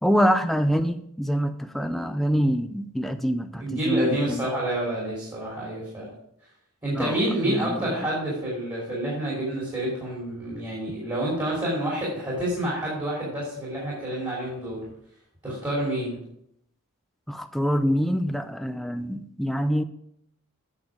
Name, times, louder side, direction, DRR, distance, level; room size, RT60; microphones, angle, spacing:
voice 1, 0.0-4.5 6.9-8.0 17.3-19.8, equal, ahead, 8 dB, 0.3 m, -25 dB
voice 2, 3.6-6.1 6.8-14.9 15.4-16.2, right 1 dB, 20° right, -6 dB, 2.8 m, -28 dB
8.6 x 6.3 x 4.7 m, 0.74 s
head